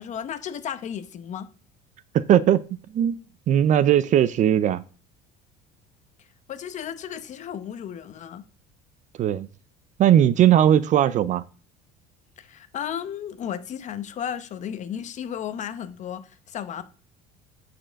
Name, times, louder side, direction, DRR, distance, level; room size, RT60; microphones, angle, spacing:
voice 1, 0.0-1.5 6.5-8.4 12.4-16.8, left 9 dB, 40° left, 0.9 m, -34 dB
voice 2, 2.1-2.6 2.9-3.2 3.5-4.8 9.2-9.5 10.0-11.4, right 10 dB, 40° right, 0.5 m, -18 dB
8.7 x 4.4 x 5.2 m
cardioid pair, 125°, 19 cm